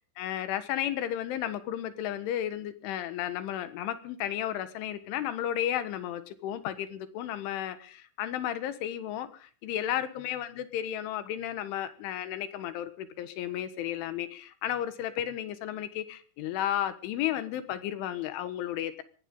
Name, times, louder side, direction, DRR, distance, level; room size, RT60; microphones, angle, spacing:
voice 1, 0.2-19.0, left 11 dB, 75° left, 12 dB, 3.6 m, -33 dB
21.0 x 17.0 x 3.8 m, 0.41 s
omnidirectional pair, 5.9 m